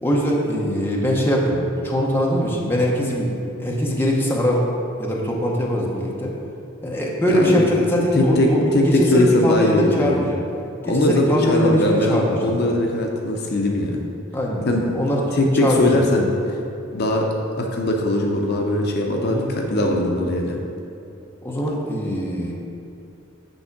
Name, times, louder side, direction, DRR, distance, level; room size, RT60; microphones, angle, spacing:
voice 1, 0.0-3.3 3.6-4.7 5.0-6.3 6.8-10.4 10.8-12.5 14.3-15.2 15.6-16.1 19.2-19.4 21.4-22.5, equal, 10° left, -3 dB, 0.8 m, -22 dB
voice 2, 7.3-7.7 8.2-10.2 10.9-14.0 14.7-14.8 15.3-16.3 16.9-17.3 17.6-20.6, left 1 dB, 50° left, 1 dB, 0.7 m, -20 dB
8.0 x 3.6 x 5.9 m, 2.7 s
head